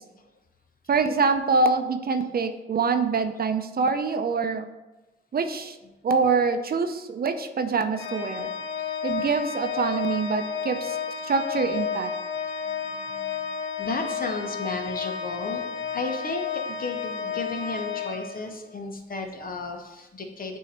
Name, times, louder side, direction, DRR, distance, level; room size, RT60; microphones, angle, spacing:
voice 1, 0.9-4.7 5.3-5.8 6.0-8.5 9.0-11.0 11.2-12.1, right 4 dB, 50° right, 8 dB, 0.6 m, -25 dB
Organ, 8.0-18.8, left 6 dB, 75° left, 0.6 m, -32 dB
voice 2, 12.7-13.1 13.8-15.6 15.9-16.4 16.8-20.6, left 3 dB, 45° left, 4 dB, 1.1 m, -33 dB
8.0 x 2.8 x 4.3 m, 1.1 s
cardioid pair, 55°, 20 cm